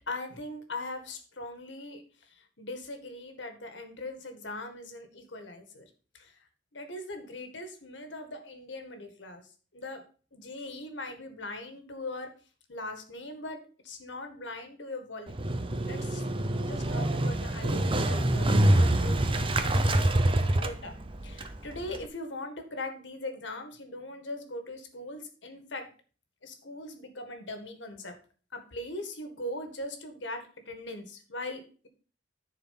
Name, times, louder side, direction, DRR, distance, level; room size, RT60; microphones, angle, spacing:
voice 1, 0.1-5.9 6.1-6.3 6.7-9.4 9.7-10.0 10.3-12.3 12.7-15.3 15.9-16.2 16.6-20.1 20.4-21.0 21.2-25.9 26.4-28.2 28.5-31.9, left 2 dB, 75° left, 6 dB, 1.9 m, -40 dB
Motorcycle, 15.3-22.1, right 1 dB, 30° right, 0.8 m, -26 dB
10.5 x 4.6 x 5.8 m, 0.38 s
head